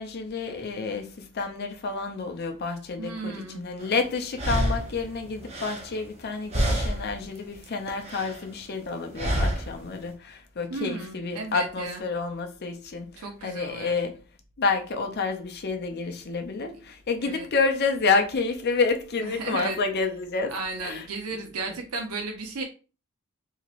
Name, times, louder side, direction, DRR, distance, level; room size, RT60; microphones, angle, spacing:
voice 1, 0.0-14.2 14.6-20.6 20.8-21.4, left 4 dB, 50° left, 0.5 m, -29 dB
voice 2, 3.0-3.6 10.7-12.0 13.2-13.9 17.2-17.5 19.4-19.8 20.5-22.6, right 3 dB, 85° right, 0.6 m, -34 dB
sound 1, 3.8-3.9 4.3-6.3 6.5-7.2 7.5-8.5 9.2-9.8, right 1 dB, 30° right, 0.6 m, -28 dB
3.0 x 2.8 x 2.5 m
head